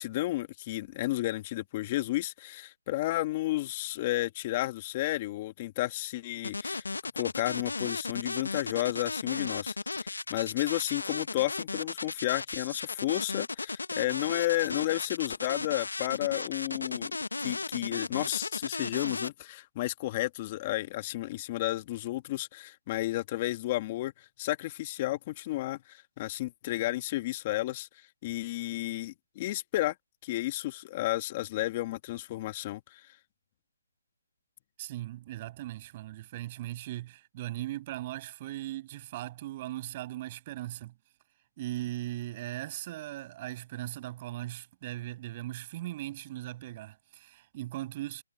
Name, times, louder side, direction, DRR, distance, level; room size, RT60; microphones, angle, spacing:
voice 1, 0.0-6.8 7.2-17.1 17.4-27.9 28.2-29.9 30.2-33.0, left 17 dB, 25° left, 1.5 m, -32 dB
sound 1, 6.4-19.3, left 3 dB, 90° left, 1.1 m, -35 dB
voice 2, 34.8-40.9 41.6-48.2, right 15 dB, 25° right, 7.7 m, -38 dB
hypercardioid pair, 165°, 0 cm